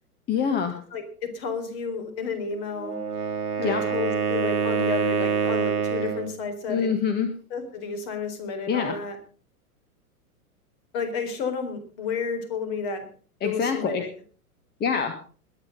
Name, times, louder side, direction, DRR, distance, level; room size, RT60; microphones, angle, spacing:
voice 1, 0.3-0.8 3.6-3.8 6.7-7.3 8.7-8.9 13.4-14.0 14.8-15.2, left 6 dB, 20° left, 8 dB, 1.6 m, -25 dB
voice 2, 0.9-3.0 3.6-6.9 7.5-9.2 10.9-13.0 13.4-14.1, left 5 dB, 40° left, 7 dB, 4.1 m, -31 dB
Wind instrument woodwind instrument, 2.8-6.4, right 6 dB, 80° right, 1.7 m, -26 dB
21.0 x 9.1 x 5.4 m, 0.41 s
figure-of-eight pair, 100°, 45 cm